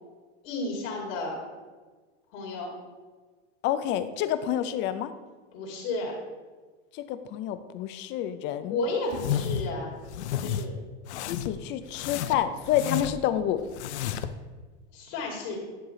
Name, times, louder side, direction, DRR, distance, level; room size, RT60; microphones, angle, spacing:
voice 1, 0.4-1.4 2.3-2.7 5.5-6.1 8.7-9.9 10.4-10.7 14.9-15.6, left 3 dB, 55° left, -2 dB, 2.6 m, -32 dB
voice 2, 3.6-5.1 6.9-8.8 11.3-13.6, left 11 dB, 35° left, 12 dB, 0.5 m, -28 dB
sound 1, 9.1-9.7 10.1-10.6 11.1-11.6 11.9-13.3 13.7-14.4, left 9 dB, 80° left, 0.6 m, -31 dB
10.5 x 4.8 x 3.8 m, 1.4 s
supercardioid pair, 130°, 33 cm